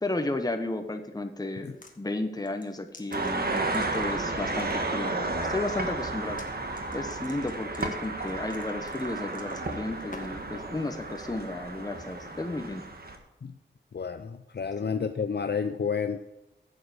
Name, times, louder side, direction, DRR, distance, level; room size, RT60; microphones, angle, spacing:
voice 1, 0.0-6.4 6.9-12.9 14.8-14.9, left 2 dB, 20° left, 6 dB, 1.0 m, -33 dB
sound 1, 1.6-2.0 2.4-4.3 4.6-5.0 6.3-6.5 6.7-10.5, left 2 dB, 40° left, 1.6 m, -49 dB
sound 2, 3.1-13.2, right 2 dB, 50° right, 1.5 m, -33 dB
voice 2, 13.9-16.2, left 6 dB, 55° left, 8 dB, 0.6 m, -30 dB
11.0 x 8.3 x 5.1 m, 0.93 s
wide cardioid pair, 70°, 20 cm